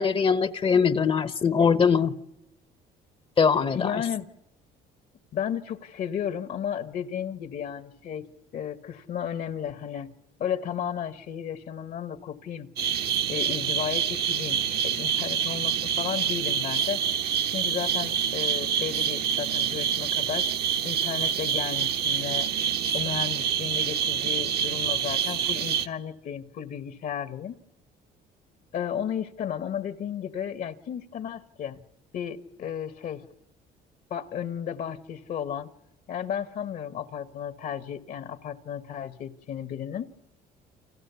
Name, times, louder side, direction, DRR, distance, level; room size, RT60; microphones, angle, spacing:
voice 1, 0.0-2.1 3.4-4.0, left 6 dB, 30° left, 0.9 m, -22 dB
voice 2, 3.7-4.2 5.3-8.2 8.5-10.1 10.4-12.7 13.3-17.0 17.5-20.5 20.8-22.5 22.9-27.6 28.7-31.8 32.1-33.2 34.1-35.7 36.1-40.1, left 9 dB, 60° left, 1.3 m, -33 dB
sound 1, 12.8-25.9, right 8 dB, 70° right, 1.5 m, -27 dB
30.0 x 26.5 x 7.0 m
cardioid pair, 110°, 17 cm